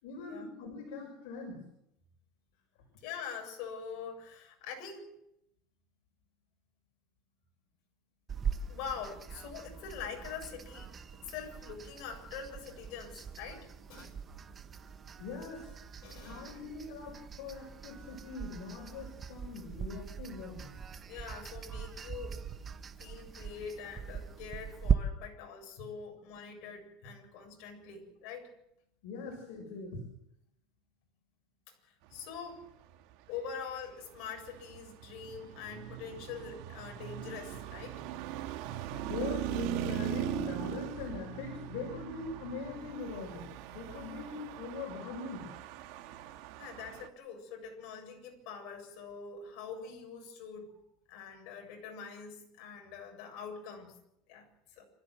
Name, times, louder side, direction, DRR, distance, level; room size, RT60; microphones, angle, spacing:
voice 1, 0.0-1.6 15.2-15.8 16.2-20.7 23.8-23.9 29.0-30.0 35.5-35.6 39.0-45.5, left 4 dB, 70° left, 1 dB, 6.1 m, -42 dB
voice 2, 3.0-5.1 8.7-14.2 16.0-16.6 21.1-22.4 23.0-28.5 31.7-32.6 33.3-38.0 46.6-50.7 51.1-53.9 54.3-54.9, left 6 dB, 55° left, 2 dB, 7.5 m, -44 dB
sound 1, 8.3-24.9, right 7 dB, 20° right, 1.0 m, -40 dB
Traffic noise roadway noise, 33.4-47.1, right 12 dB, 65° right, 1.7 m, -40 dB
27.5 x 14.0 x 7.8 m, 0.79 s
cardioid pair, 160°, 0 cm